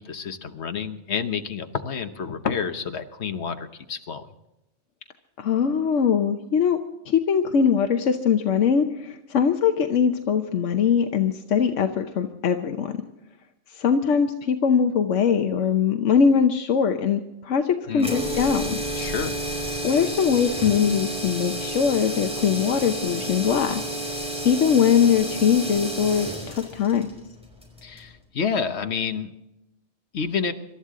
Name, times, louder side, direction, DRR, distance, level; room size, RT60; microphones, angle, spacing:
voice 1, 0.0-4.3 17.9-18.1 18.9-19.4 27.8-29.3 30.1-30.5, left 6 dB, 65° left, 8 dB, 1.3 m, -29 dB
voice 2, 5.4-6.8 7.1-12.9 13.7-18.8 19.8-27.1, left 7 dB, 90° left, 6 dB, 1.2 m, -22 dB
sound 1, 18.0-28.1, right 1 dB, 5° right, 4.9 m, -31 dB
26.0 x 13.0 x 3.7 m, 0.93 s
omnidirectional pair, 1.2 m